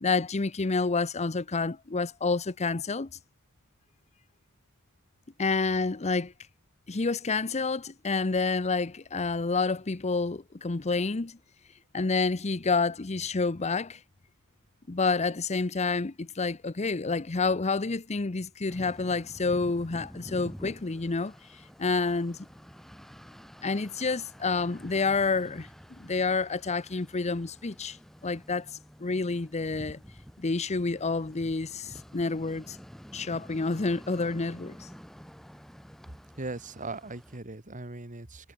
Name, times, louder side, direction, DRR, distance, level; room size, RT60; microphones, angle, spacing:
voice 1, 0.0-3.1 5.4-6.3 6.9-11.4 11.9-14.0 14.9-22.5 23.6-25.7 26.0-28.0 28.2-28.7 29.0-30.0 30.4-32.8 33.1-34.9, left 4 dB, 30° left, 0.7 m, -29 dB
sound 1, 18.7-37.4, equal, ahead, 2.5 m, -49 dB
voice 2, 36.4-38.5, right 2 dB, 35° right, 2.1 m, -39 dB
head